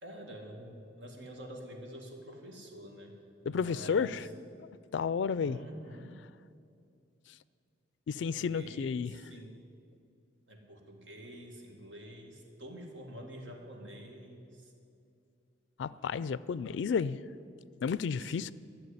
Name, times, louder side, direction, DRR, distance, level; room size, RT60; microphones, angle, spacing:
voice 1, 0.0-3.2 3.4-4.1 5.4-6.2 8.2-9.5 10.5-14.7 18.2-18.5, equal, 80° right, 2 dB, 2.1 m, -47 dB
voice 2, 3.5-4.2 4.9-5.6 8.1-9.2 15.8-17.2 17.8-18.5, left 6 dB, 70° left, 18 dB, 0.3 m, -32 dB
13.5 x 7.1 x 9.8 m, 2.5 s
head